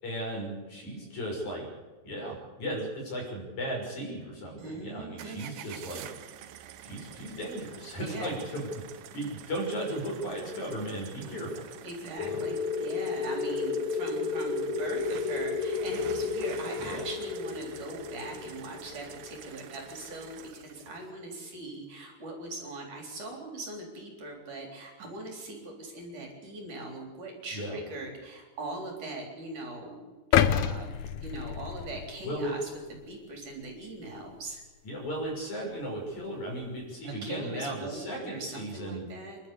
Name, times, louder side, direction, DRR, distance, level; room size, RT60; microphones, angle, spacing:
voice 1, 0.0-1.7 2.0-6.1 6.8-8.7 9.1-11.7 12.2-12.4 16.8-17.1 27.5-27.8 32.2-32.5 34.8-39.1, right 1 dB, 45° left, -1 dB, 7.3 m, -36 dB
voice 2, 4.6-5.5 7.9-8.4 11.2-11.4 11.8-30.2 30.4-32.7 33.1-34.6 37.0-39.4, right 2 dB, 50° right, 1 dB, 5.1 m, -41 dB
sound 1, 5.2-21.1, right 10 dB, 75° right, 2.8 m, -47 dB
sound 2, 12.2-20.5, left 4 dB, 65° left, 3.3 m, -33 dB
sound 3, 30.3-32.5 33.0-33.1, left 9 dB, 85° left, 1.7 m, -27 dB
28.0 x 12.0 x 8.5 m, 1.3 s
omnidirectional pair, 4.5 m